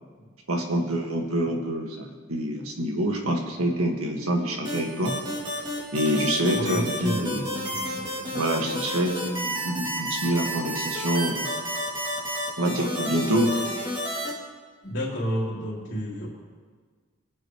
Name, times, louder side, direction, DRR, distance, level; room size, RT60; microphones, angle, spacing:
voice 1, 0.5-5.1 5.9-7.5 8.3-11.5 12.6-13.5, right 1 dB, 85° right, 1 dB, 1.9 m, -26 dB
sound 1, 4.6-14.3, equal, 20° right, 2.7 m, -31 dB
voice 2, 6.5-8.3 14.8-16.3, equal, 55° left, -5 dB, 3.9 m, -31 dB
23.0 x 9.0 x 3.2 m, 1.5 s
head